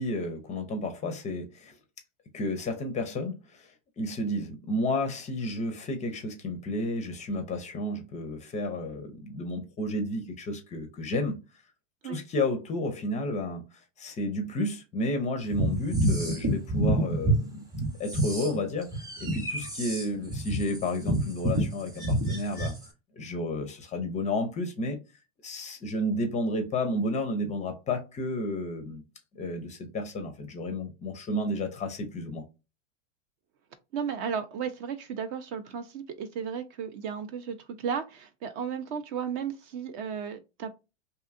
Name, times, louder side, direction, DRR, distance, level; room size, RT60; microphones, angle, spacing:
voice 1, 0.0-1.8 2.3-3.7 4.0-11.4 12.0-13.6 14.0-17.7 18.0-18.9 19.2-22.8 23.2-25.0 25.4-29.0 29.3-32.4, left 1 dB, 20° left, 0.5 m, -31 dB
sound 1, 15.5-17.4 17.7-22.9, right 1 dB, 10° right, 0.8 m, -27 dB
voice 2, 33.9-40.7, right 7 dB, 40° right, 0.4 m, -34 dB
2.7 x 2.4 x 2.4 m
hypercardioid pair, 105°, 38 cm